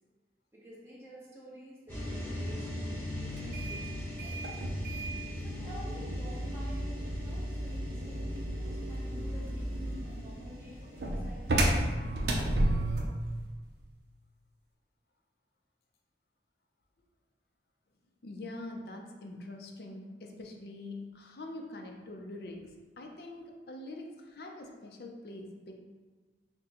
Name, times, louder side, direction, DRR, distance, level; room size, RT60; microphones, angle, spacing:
voice 1, 0.5-4.4 5.4-11.6, equal, 15° right, -7 dB, 1.0 m, -50 dB
sound 1, 1.9-11.9, left 1 dB, 10° left, 1.1 m, -41 dB
sound 2, 3.3-13.2, right 1 dB, 70° right, 0.6 m, -33 dB
voice 2, 18.2-25.8, left 2 dB, 60° left, 2 dB, 0.5 m, -44 dB
6.0 x 2.2 x 2.9 m, 1.3 s
head